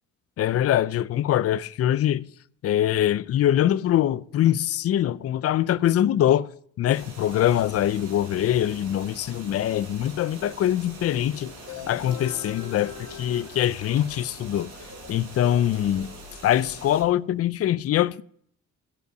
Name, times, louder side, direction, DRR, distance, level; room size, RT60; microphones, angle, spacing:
voice 1, 0.4-2.3 2.6-6.5 6.8-11.5 11.9-14.7 15.1-16.1 16.4-18.2, left 12 dB, 50° left, 0.5 m, -23 dB
sound 1, 6.9-17.0, right 2 dB, 85° right, 4.2 m, -44 dB
sound 2, 11.7-14.3, left 8 dB, 80° left, 1.6 m, -41 dB
14.0 x 5.4 x 6.3 m
cardioid pair, 90°, 30 cm